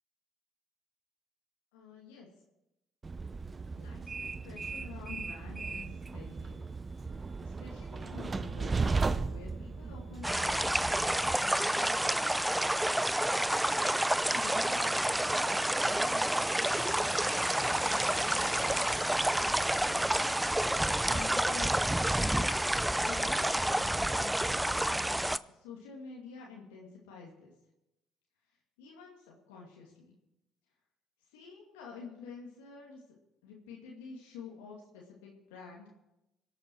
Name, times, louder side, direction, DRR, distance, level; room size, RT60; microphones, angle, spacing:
voice 1, 1.7-2.3 3.7-6.7 7.0-12.4 13.3-20.4 21.0-21.8 22.2-22.6 23.0-27.5 28.8-30.2 31.3-33.0 33.4-35.9, left 5 dB, 85° left, -3 dB, 2.3 m, -49 dB
Train, 3.0-11.4, right 4 dB, 30° right, 0.8 m, -36 dB
sound 1, 10.2-25.4, right 1 dB, 5° right, 0.5 m, -29 dB
24.5 x 8.6 x 4.6 m, 0.92 s
hypercardioid pair, 60°, 0 cm